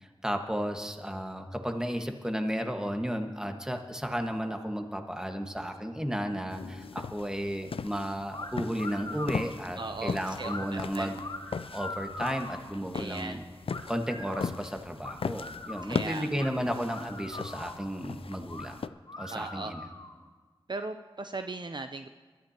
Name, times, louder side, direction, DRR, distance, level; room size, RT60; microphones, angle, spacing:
voice 1, 0.0-11.2 11.7-13.4 13.9-18.8 19.2-19.8, equal, 5° right, 4 dB, 1.5 m, -33 dB
sound 1, 6.5-18.9, left 5 dB, 75° left, 0.4 m, -39 dB
sound 2, 8.3-8.5 8.8-9.5 10.4-10.7 11.2-12.7 13.7-14.5 15.0-16.0 16.4-16.5 16.9-17.9 18.5-18.7 19.1-20.2, left 2 dB, 55° left, 1.8 m, -41 dB
voice 2, 9.8-11.1 12.9-13.4 15.8-16.5 19.3-19.7 20.7-22.1, right 3 dB, 50° right, 8 dB, 0.5 m, -38 dB
22.5 x 13.0 x 2.9 m, 1.4 s
wide cardioid pair, 45°, 10 cm